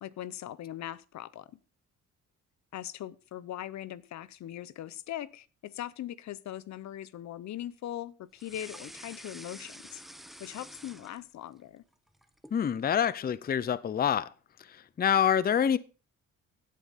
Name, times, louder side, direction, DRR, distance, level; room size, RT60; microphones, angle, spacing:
voice 1, 0.0-1.5 2.7-10.0 10.4-11.8, left 12 dB, 65° left, 0.7 m, -40 dB
sound 1, 8.4-11.6 11.9-12.6, equal, ahead, 1.0 m, -48 dB
voice 2, 12.5-14.3 14.6-15.8, left 8 dB, 30° left, 0.5 m, -26 dB
16.0 x 8.4 x 4.1 m
cardioid pair, 90°, 30 cm